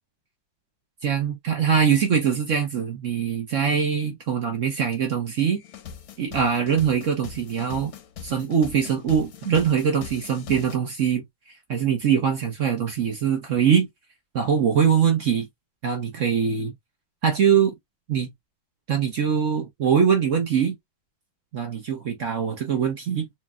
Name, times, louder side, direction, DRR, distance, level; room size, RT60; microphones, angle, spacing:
voice 1, 1.0-5.6 6.2-7.9 8.2-11.2 11.7-13.9 14.3-15.5 15.8-16.7 17.2-17.7 18.1-18.3 18.9-20.7 21.5-23.3, right 7 dB, 60° right, 0.8 m, -22 dB
sound 1, 4.9-5.0 5.4-10.8, left 7 dB, 65° left, 1.0 m, -42 dB
4.1 x 3.0 x 2.4 m
omnidirectional pair, 2.1 m